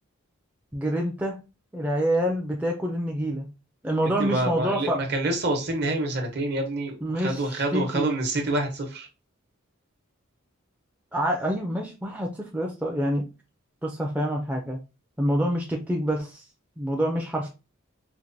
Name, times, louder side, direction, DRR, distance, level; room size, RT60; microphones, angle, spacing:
voice 1, 0.7-1.4 1.7-3.5 3.8-5.0 7.0-8.1 11.1-13.3 13.8-14.8 15.2-16.4 16.8-17.5, equal, 5° right, 0.4 m, -27 dB
voice 2, 4.2-9.1, right 2 dB, 50° right, 0.9 m, -27 dB
4.4 x 2.2 x 2.6 m
head